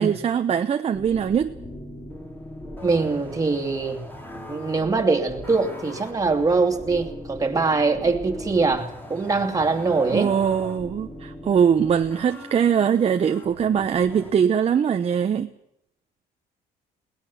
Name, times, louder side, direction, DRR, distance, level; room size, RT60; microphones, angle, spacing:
voice 1, 0.0-1.5 10.1-15.5, right 7 dB, 35° right, 7 dB, 1.0 m, -22 dB
sound 1, 0.9-14.3, left 1 dB, 10° left, 3.6 m, -40 dB
voice 2, 2.8-4.1 4.5-10.3, right 4 dB, 20° right, 4 dB, 2.7 m, -23 dB
21.0 x 18.5 x 7.4 m, 0.79 s
cardioid pair, 110°, 17 cm